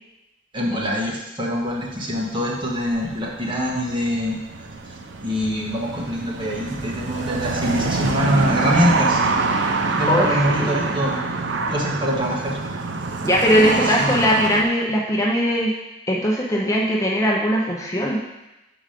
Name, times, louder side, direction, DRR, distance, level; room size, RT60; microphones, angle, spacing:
voice 1, 0.5-4.4 5.2-9.2 9.9-11.2 11.7-12.6 13.5-13.7 14.0-14.2, equal, 25° right, -3 dB, 1.5 m, -24 dB
sound 1, 1.7-14.6, right 3 dB, 70° right, 0.7 m, -26 dB
voice 2, 10.1-10.9 13.2-15.7 16.1-18.2, equal, 20° left, -2 dB, 0.8 m, -20 dB
7.1 x 5.0 x 5.1 m, 0.97 s
head